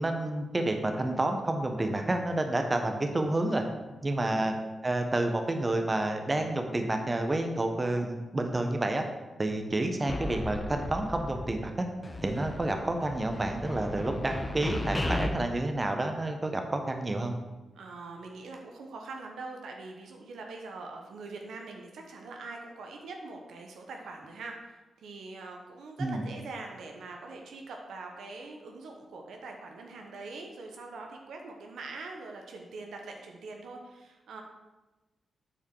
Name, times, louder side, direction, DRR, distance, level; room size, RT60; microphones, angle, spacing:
voice 1, 0.0-3.6 4.0-4.5 4.8-9.0 9.4-11.9 12.2-17.3 26.0-26.2, right 2 dB, 30° right, 5 dB, 1.1 m, -29 dB
voice 2, 4.2-4.5 17.7-34.4, right 3 dB, 80° right, 2 dB, 1.0 m, -43 dB
sound 1, 10.1-11.8 12.0-15.3, left 2 dB, 25° left, 1.0 m, -35 dB
8.8 x 4.7 x 4.8 m, 1.1 s
supercardioid pair, 50°, 0 cm